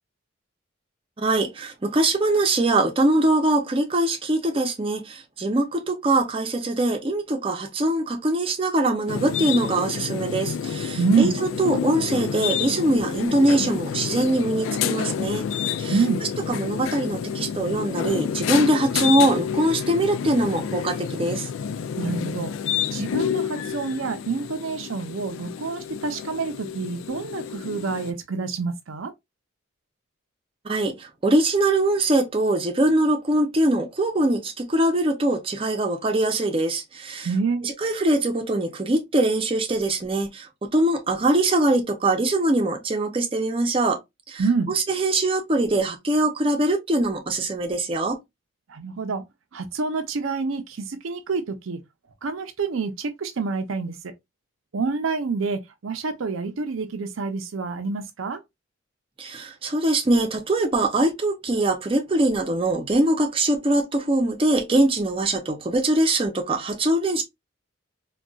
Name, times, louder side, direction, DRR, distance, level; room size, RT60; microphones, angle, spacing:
voice 1, 1.2-15.5 15.8-16.0 16.5-21.5 30.6-37.3 37.6-44.0 44.3-48.2 59.2-67.2, right 1 dB, 25° right, 0.6 m, -22 dB
sound 1, 9.1-28.1, left 7 dB, 75° left, 0.3 m, -29 dB
voice 2, 11.0-11.3 15.9-16.2 22.0-22.5 22.9-29.1 37.2-37.6 44.4-44.8 48.7-49.2 49.5-51.8 52.2-53.9 54.7-58.4, right 4 dB, 80° right, 0.5 m, -27 dB
3.8 x 2.3 x 2.3 m
head